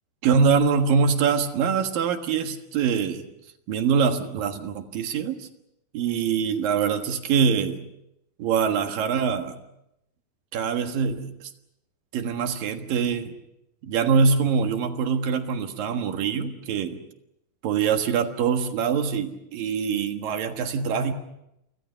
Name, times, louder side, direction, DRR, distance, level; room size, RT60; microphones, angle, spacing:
voice 1, 0.2-3.2 3.7-5.5 5.9-7.9 8.4-9.6 10.5-11.5 12.1-13.3 13.8-17.0 17.6-21.1, right 6 dB, 70° right, 6 dB, 3.2 m, -24 dB
28.5 x 25.5 x 5.7 m, 0.83 s
omnidirectional pair, 4.3 m